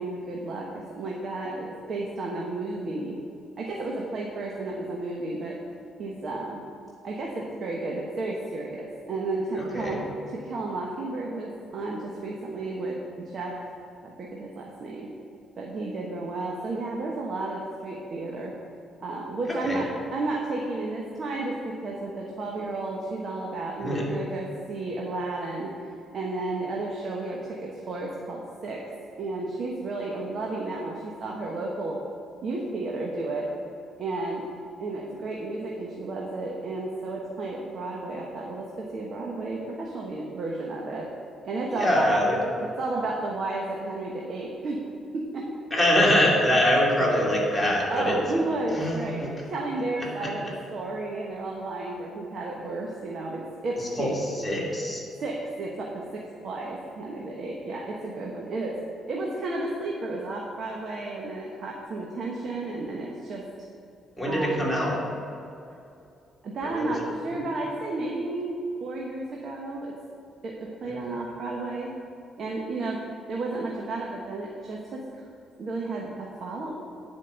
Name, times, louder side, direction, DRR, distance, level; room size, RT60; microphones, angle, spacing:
voice 1, 0.0-3.2 3.6-5.6 6.0-6.6 7.0-13.0 13.3-13.6 14.0-15.1 15.6-18.5 19.0-25.7 26.1-28.8 29.2-32.0 32.4-33.5 34.0-34.4 34.8-41.1 41.4-42.2 42.8-44.8 45.1-45.5 47.9-54.2 55.2-58.8 59.1-63.4 64.3-64.7 66.4-69.9 70.4-70.5 70.8-71.9 72.4-73.0 73.3-75.0 75.6-76.7, right 2 dB, 55° right, -2 dB, 1.3 m, -32 dB
voice 2, 9.6-10.0 19.5-19.8 23.8-24.0 41.7-42.4 45.7-48.2 48.7-49.3 50.2-50.3 53.8-55.0 64.2-65.0 66.6-66.9, left 1 dB, 10° left, -5 dB, 2.6 m, -24 dB
10.0 x 5.2 x 6.5 m, 2.6 s
cardioid pair, 90°, 0 cm